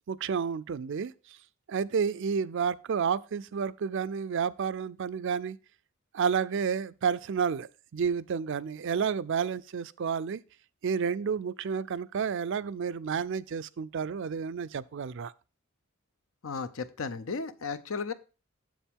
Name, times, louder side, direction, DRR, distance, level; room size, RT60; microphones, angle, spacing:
voice 1, 0.1-1.1 1.7-5.6 6.1-7.7 7.9-10.4 10.8-15.3, right 6 dB, 65° right, 0.4 m, -30 dB
voice 2, 16.4-18.1, left 4 dB, 75° left, 0.7 m, -34 dB
7.3 x 7.2 x 3.6 m
head